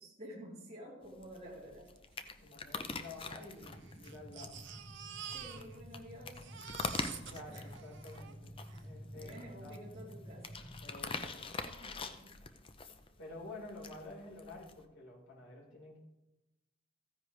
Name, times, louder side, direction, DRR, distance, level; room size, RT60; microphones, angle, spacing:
voice 1, 0.0-1.9 5.3-7.1 7.4-7.7 8.7-8.8 9.1-10.5 11.6-12.3, equal, 30° right, -7 dB, 3.1 m, -51 dB
sound 1, 1.0-14.8, left 4 dB, 25° left, 0.6 m, -45 dB
Crying sobbing, 2.0-2.1 2.3-2.4 3.1-6.0 6.3-8.9 9.7-9.8 10.1-10.2, right 9 dB, 55° right, 0.6 m, -49 dB
voice 2, 2.4-4.6 7.3-9.8 10.8-11.5 13.2-16.0, left 2 dB, 65° left, -4 dB, 4.2 m, -50 dB
sound 2, 3.6-10.9, equal, 5° left, 1.0 m, -51 dB
14.5 x 9.8 x 3.3 m, 0.98 s
head